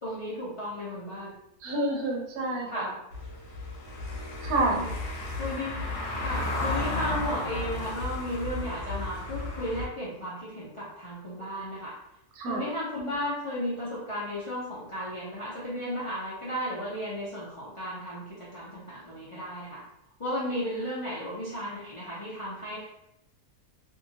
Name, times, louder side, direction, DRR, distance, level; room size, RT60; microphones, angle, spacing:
voice 1, 0.0-1.3 2.7-2.9 4.5-4.9 5.4-5.8 6.2-12.0 12.5-19.8 20.2-22.8, equal, 50° left, -8 dB, 0.3 m, -34 dB
voice 2, 1.6-2.9 4.4-4.8 12.4-12.7, right 2 dB, 80° right, 0 dB, 1.1 m, -28 dB
Car passing by / Engine, 3.1-9.9, left 2 dB, 65° left, 1.0 m, -33 dB
2.7 x 2.7 x 2.7 m, 0.82 s
omnidirectional pair, 1.6 m